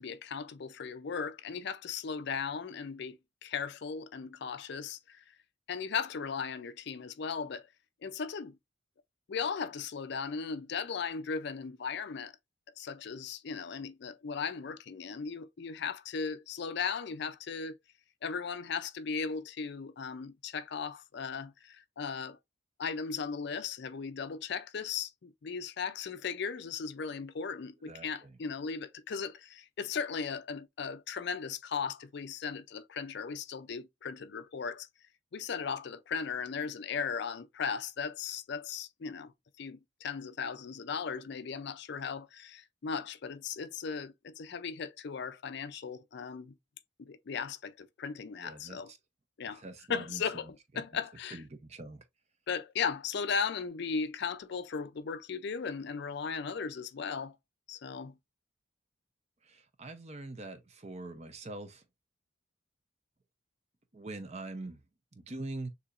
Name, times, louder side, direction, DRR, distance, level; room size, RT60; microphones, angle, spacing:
voice 1, 0.0-5.2 5.7-7.7 8.0-8.6 9.3-12.3 12.8-17.8 18.2-22.4 22.8-34.9 35.3-39.3 39.6-46.5 47.0-48.9 49.4-49.6 49.9-51.4 52.5-57.4 57.7-58.1, left 6 dB, 60° left, 0.4 m, -37 dB
voice 2, 27.8-28.4 48.4-49.0 49.5-50.2 51.3-52.0 59.4-61.8 63.9-64.8 65.2-65.7, right 2 dB, 35° right, 0.7 m, -43 dB
6.7 x 2.8 x 2.5 m
head